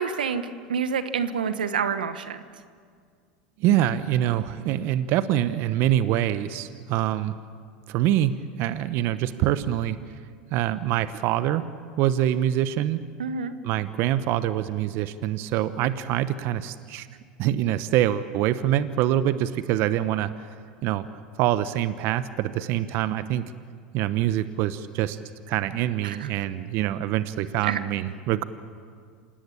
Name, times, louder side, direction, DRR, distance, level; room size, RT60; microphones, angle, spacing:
voice 1, 0.0-2.4 13.2-13.5 26.0-26.3 27.6-27.8, right 6 dB, 85° right, 11 dB, 1.2 m, -28 dB
voice 2, 3.6-7.3 7.9-10.0 10.5-11.6 12.0-13.0 13.6-17.1 17.4-20.5 20.8-21.1 21.4-23.4 23.9-25.2 25.5-28.4, right 12 dB, 55° right, 13 dB, 0.9 m, -25 dB
27.5 x 18.0 x 8.6 m, 2.1 s
hypercardioid pair, 85°, 5 cm